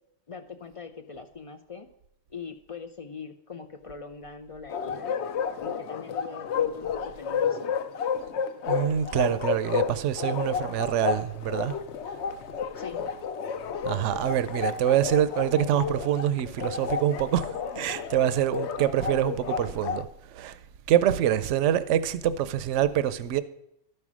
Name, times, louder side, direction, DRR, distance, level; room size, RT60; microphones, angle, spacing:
voice 1, 0.3-1.9 2.3-5.1 5.6-7.7 12.8-13.2, left 5 dB, 55° left, 0.3 m, -42 dB
Bark, 4.7-20.0, left 6 dB, 70° left, 0.9 m, -31 dB
voice 2, 8.7-11.7 13.8-17.5 17.8-20.1 20.3-20.6 20.9-23.4, right 11 dB, 80° right, 0.9 m, -25 dB
12.5 x 5.6 x 6.1 m
omnidirectional pair, 1.2 m